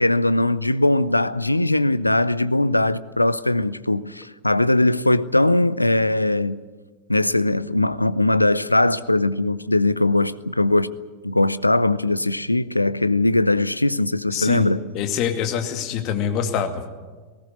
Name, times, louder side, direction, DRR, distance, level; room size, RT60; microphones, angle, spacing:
voice 1, 0.0-6.6 7.1-10.9 11.2-14.9, left 2 dB, 85° left, 0.7 m, -20 dB
voice 2, 14.3-14.7 14.9-16.8, left 8 dB, 40° left, 2.4 m, -24 dB
19.0 x 18.0 x 9.5 m
figure-of-eight pair, 90°, 0 cm